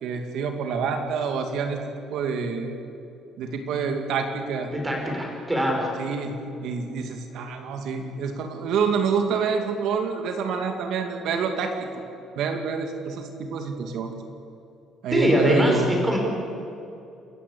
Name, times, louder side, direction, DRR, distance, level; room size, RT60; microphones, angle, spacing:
voice 1, 0.0-1.8 2.1-2.7 3.4-4.7 6.0-12.0 12.4-14.1 15.0-15.9, right 5 dB, 65° right, 5 dB, 2.4 m, -27 dB
voice 2, 4.7-5.9 15.1-16.2, equal, 10° right, 1 dB, 4.9 m, -23 dB
28.5 x 14.5 x 8.4 m, 2.6 s
cardioid pair, 160°, 0 cm